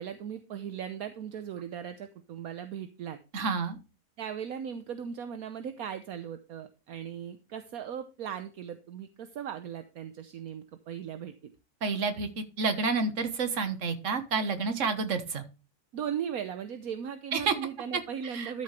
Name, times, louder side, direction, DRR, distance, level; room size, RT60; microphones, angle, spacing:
voice 1, 0.0-3.2 4.2-11.3 15.9-18.6, right 8 dB, 70° right, 9 dB, 1.3 m, -38 dB
voice 2, 3.3-3.8 11.8-15.4 17.3-17.5 17.9-18.0 18.3-18.6, right 4 dB, 55° right, 9 dB, 1.7 m, -29 dB
12.5 x 6.7 x 3.3 m, 0.31 s
omnidirectional pair, 1.6 m